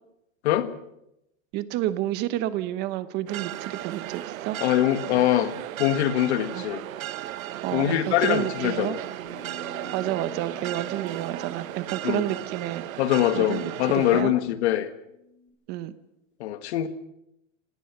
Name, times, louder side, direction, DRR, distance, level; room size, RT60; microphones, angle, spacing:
voice 1, 1.5-4.6 6.5-6.6 7.6-9.0 9.9-12.8 13.3-14.3 15.7-15.9, right 14 dB, 25° right, 14 dB, 0.9 m, -30 dB
sound 1, 3.3-14.2, right 13 dB, 90° right, 1.1 m, -35 dB
voice 2, 4.6-5.5 5.8-6.8 7.7-9.0 12.0-12.2 13.0-14.9 16.4-16.9, left 12 dB, 55° left, 11 dB, 1.7 m, -23 dB
sound 2, 9.3-15.5, left 3 dB, 25° left, 4.3 m, -49 dB
27.5 x 18.0 x 6.0 m, 0.85 s
supercardioid pair, 170°, 40 cm